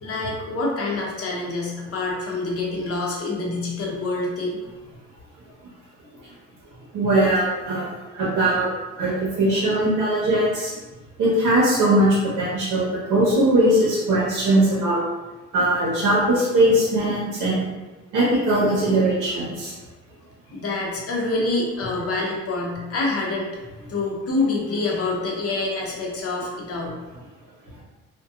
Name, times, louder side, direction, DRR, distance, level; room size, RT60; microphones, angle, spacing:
voice 1, 0.0-4.6 20.5-23.5 23.9-26.9, left 2 dB, 50° left, -2 dB, 0.8 m, -26 dB
voice 2, 6.9-8.7 9.0-10.7 11.2-15.0 15.5-17.6 18.1-19.7, right 1 dB, 80° right, -7 dB, 0.8 m, -20 dB
2.7 x 2.2 x 2.4 m, 1.2 s
cardioid pair, 90°, 30 cm